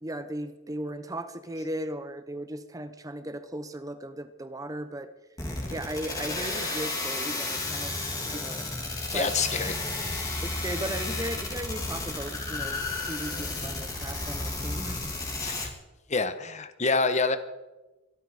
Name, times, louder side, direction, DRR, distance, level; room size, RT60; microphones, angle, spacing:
voice 1, 0.0-5.1 5.7-8.0 8.2-8.7 9.1-9.3 10.4-15.2 15.6-15.7, right 1 dB, 20° right, 11 dB, 0.9 m, -37 dB
sound 1, 5.4-15.7, left 2 dB, 20° left, 3.3 m, -32 dB
voice 2, 9.1-10.4 15.4-15.7 16.1-17.4, left 4 dB, 40° left, 10 dB, 1.2 m, -28 dB
23.0 x 12.5 x 5.0 m, 1.1 s
head